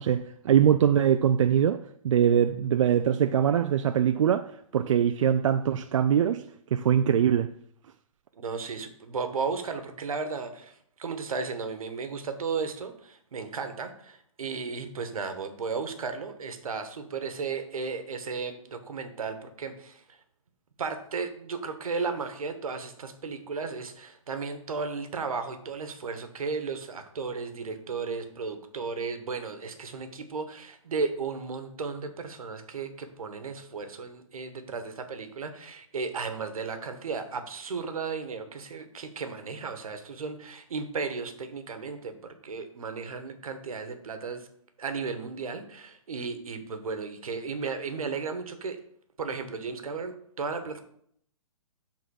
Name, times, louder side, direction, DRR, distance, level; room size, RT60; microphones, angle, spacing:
voice 1, 0.0-6.4 6.7-7.5, right 9 dB, 60° right, 0.4 m, -23 dB
voice 2, 8.3-20.2 20.8-44.5 44.8-48.8 49.2-50.8, right 4 dB, 80° right, 1.3 m, -34 dB
7.6 x 3.9 x 6.4 m
hypercardioid pair, 155°, 18 cm